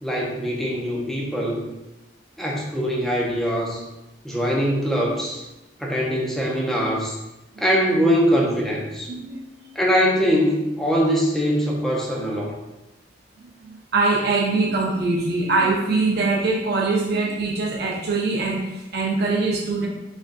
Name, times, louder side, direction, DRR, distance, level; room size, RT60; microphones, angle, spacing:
voice 1, 0.0-1.6 2.4-3.8 4.2-5.4 5.8-7.2 7.6-9.1 9.8-12.5, equal, ahead, -3 dB, 0.5 m, -22 dB
voice 2, 9.1-9.5 13.4-19.9, right 3 dB, 60° right, -1 dB, 0.6 m, -23 dB
3.3 x 2.5 x 2.5 m, 1.0 s
head